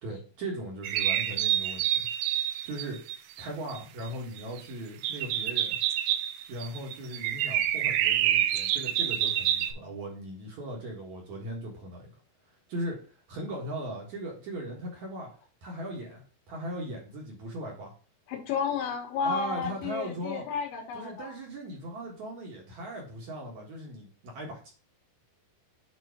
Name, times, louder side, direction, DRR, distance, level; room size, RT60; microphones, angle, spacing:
voice 1, 0.0-2.1 2.6-3.0 3.4-5.8 6.5-12.1 12.7-15.3 15.6-17.9 19.2-20.4 20.9-24.7, right 1 dB, 55° right, -1 dB, 2.2 m, -38 dB
sound 1, 0.8-3.8 4.1-4.2 4.4-4.6 5.0-9.7, right 11 dB, 85° right, 2.3 m, -27 dB
voice 2, 18.3-21.3, left 6 dB, 85° left, 0 dB, 4.0 m, -32 dB
9.1 x 3.1 x 4.6 m, 0.38 s
omnidirectional pair, 5.1 m